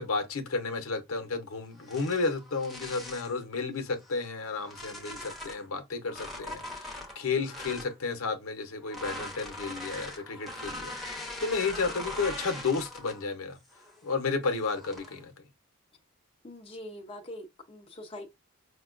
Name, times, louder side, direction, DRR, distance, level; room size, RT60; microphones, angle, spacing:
voice 1, 0.0-13.6 14.0-15.3, left 4 dB, 65° left, 0.7 m, -32 dB
sound 1, 1.8-3.4 4.0-5.7 6.1-7.9 8.8-13.3 13.7-14.0 14.7-15.2, left 1 dB, ahead, 0.8 m, -41 dB
voice 2, 16.4-18.3, left 1 dB, 25° left, 0.5 m, -43 dB
5.1 x 2.2 x 2.4 m
head